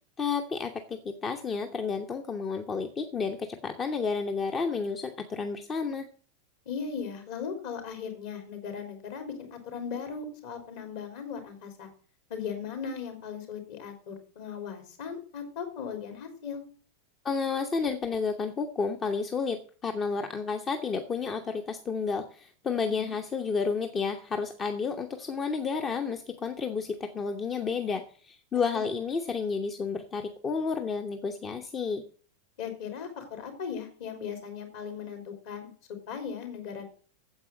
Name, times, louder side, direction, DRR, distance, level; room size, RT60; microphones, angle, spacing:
voice 1, 0.2-6.1 17.2-32.0, left 5 dB, 20° left, 6 dB, 1.1 m, -31 dB
voice 2, 6.7-11.9 12.3-16.6 23.0-23.1 28.7-28.8 32.6-35.7 36.1-36.8, left 6 dB, 50° left, 5 dB, 3.5 m, -38 dB
9.6 x 7.8 x 7.4 m, 0.42 s
figure-of-eight pair, 90°, 0 cm